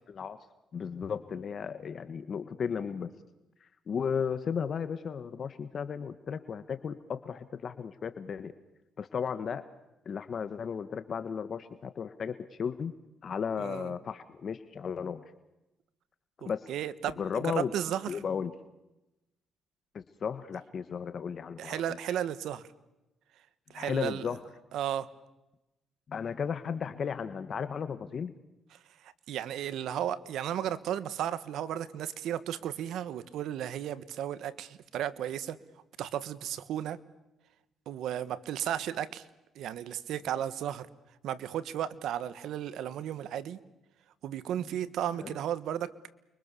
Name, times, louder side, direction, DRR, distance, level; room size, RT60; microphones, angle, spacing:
voice 1, 0.7-3.1 3.9-8.5 9.0-9.6 10.0-12.9 13.2-15.2 16.4-16.7 17.2-17.7 18.1-18.5 19.9-21.8 23.7-24.4 26.1-28.3 44.6-44.7 45.2-45.3, left 6 dB, 50° left, 11 dB, 1.6 m, -34 dB
voice 2, 13.6-13.9 16.4-18.2 21.6-22.7 23.7-24.4 24.7-25.1 29.3-35.6 36.0-37.0 37.9-39.2 39.5-40.9 41.2-43.6 44.2-45.9, right 10 dB, 80° right, 15 dB, 1.5 m, -34 dB
29.5 x 24.0 x 7.0 m, 0.94 s
cardioid pair, 90°, 0 cm